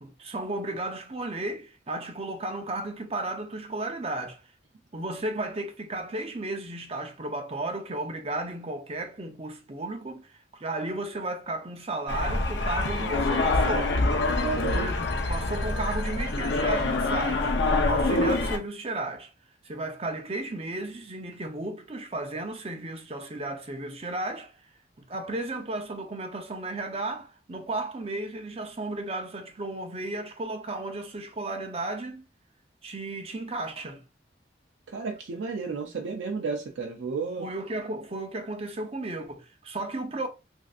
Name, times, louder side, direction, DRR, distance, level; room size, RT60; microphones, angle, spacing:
voice 1, 0.0-4.4 4.9-14.0 14.7-17.6 17.9-19.3 19.6-24.5 25.1-32.2 32.8-34.0 37.4-40.3, right 2 dB, 30° right, 0.6 m, -34 dB
sound 1, 12.1-18.6, left 2 dB, 70° left, 0.6 m, -25 dB
voice 2, 14.4-14.8 34.9-37.5, right 4 dB, 85° right, 0.5 m, -32 dB
3.2 x 2.6 x 2.4 m
head